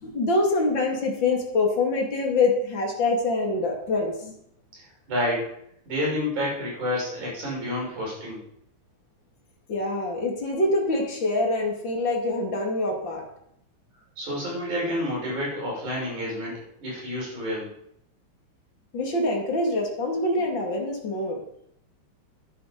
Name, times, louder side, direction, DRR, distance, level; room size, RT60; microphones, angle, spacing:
voice 1, 0.0-4.4 9.7-13.2 18.9-21.4, left 2 dB, 40° left, 0 dB, 3.0 m, -25 dB
voice 2, 4.7-5.5 5.9-8.4 14.2-17.7, left 1 dB, 70° right, -5 dB, 7.3 m, -29 dB
11.0 x 10.5 x 5.3 m, 0.73 s
omnidirectional pair, 3.5 m